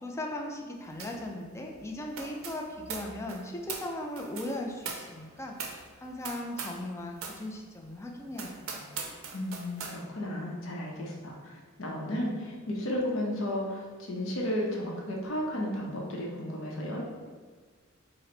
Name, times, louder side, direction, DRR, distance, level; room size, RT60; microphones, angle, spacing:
voice 1, 0.0-8.9, left 1 dB, 15° left, 1 dB, 0.4 m, -38 dB
sound 1, 1.0-1.3 1.5-6.9 7.2-7.4 7.9-8.0 8.3-10.0, right 5 dB, 75° right, 0.5 m, -41 dB
voice 2, 9.3-17.0, left 1 dB, 65° left, -1 dB, 0.7 m, -33 dB
3.9 x 2.0 x 4.1 m, 1.5 s
head